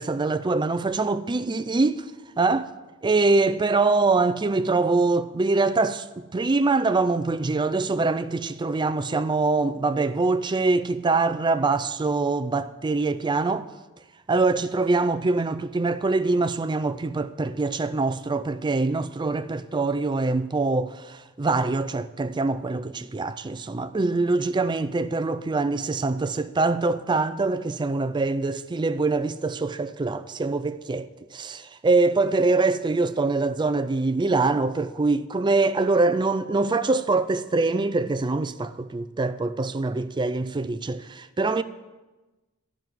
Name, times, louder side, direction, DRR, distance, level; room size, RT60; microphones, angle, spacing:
voice 1, 0.0-2.1 2.4-2.7 3.0-13.7 14.3-41.6, right 3 dB, 20° right, 0.4 m, -24 dB
12.5 x 6.1 x 9.2 m
head